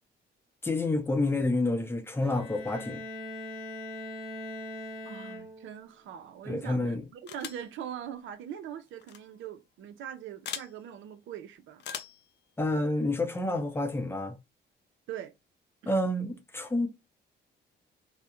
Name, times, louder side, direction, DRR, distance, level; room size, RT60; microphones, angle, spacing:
voice 1, 0.6-3.0 6.5-7.0 12.6-14.3 15.9-16.9, left 2 dB, 10° left, 0.6 m, -29 dB
Bowed string instrument, 2.2-5.9, left 1 dB, 25° right, 1.1 m, -41 dB
voice 2, 5.0-11.8 15.1-15.3 15.8-15.9, right 9 dB, 75° right, 0.5 m, -42 dB
sound 1, 7.3-7.7 9.0-9.2 10.4-10.7 11.8-12.2, left 8 dB, 60° left, 0.4 m, -39 dB
2.3 x 2.1 x 2.9 m
cardioid pair, 90°, 20 cm